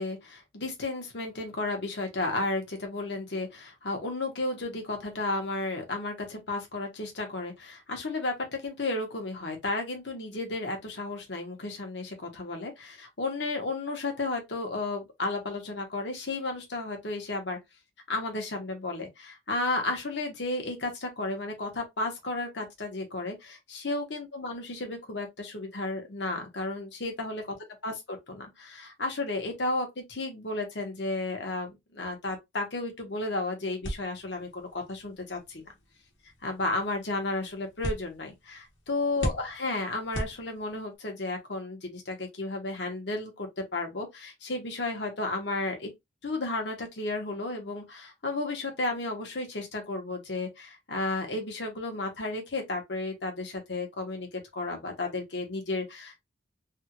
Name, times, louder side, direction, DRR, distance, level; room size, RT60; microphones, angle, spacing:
voice 1, 0.0-17.6 18.1-27.4 27.8-35.6 36.4-45.9 46.2-56.2, left 2 dB, 60° left, 1.1 m, -33 dB
sound 1, 33.8-41.0, equal, 75° left, 1.3 m, -40 dB
3.4 x 2.4 x 2.9 m
head